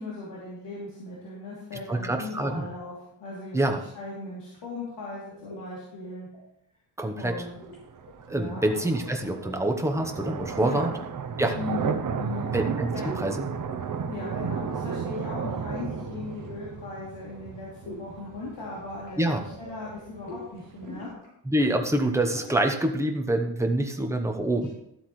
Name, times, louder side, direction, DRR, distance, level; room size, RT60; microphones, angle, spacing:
voice 1, 0.0-6.3 7.2-7.6 8.3-8.7 10.6-10.9 11.6-12.5 12.9-13.0 14.1-21.1 24.6-24.7, left 3 dB, 85° left, -7 dB, 3.0 m, -38 dB
voice 2, 1.9-2.7 3.5-3.8 7.0-7.5 8.3-10.9 11.4-11.6 12.5-12.9 13.2-13.4 19.2-19.4 21.4-24.7, right 1 dB, 5° right, 3 dB, 0.9 m, -26 dB
sound 1, 3.6-3.8 5.3-5.6 6.0-6.4 7.6-7.8 8.1-8.8 9.0-10.7 13.0-13.2 13.6-13.9 14.2-14.3 14.5-16.2 17.8-18.0 18.6-20.4 20.8-21.3 21.6-21.8 22.1-22.5, left 2 dB, 55° left, 4.3 m, -44 dB
sound 2, 7.2-21.1, right 6 dB, 50° right, 0.7 m, -34 dB
12.5 x 8.1 x 3.2 m, 0.77 s
wide cardioid pair, 160°, 43 cm